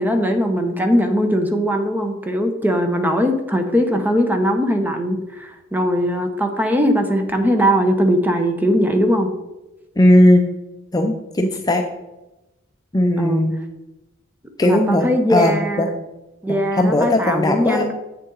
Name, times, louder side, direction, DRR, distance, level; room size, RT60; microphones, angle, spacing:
voice 1, 0.0-9.3 13.2-13.4 14.6-15.9 16.4-17.9, equal, 10° right, 5 dB, 0.9 m, -20 dB
voice 2, 10.0-10.5 10.9-11.8 12.9-13.6 14.6-15.9 16.5-17.9, left 1 dB, 20° left, 4 dB, 0.5 m, -17 dB
7.9 x 6.7 x 3.9 m, 0.99 s
head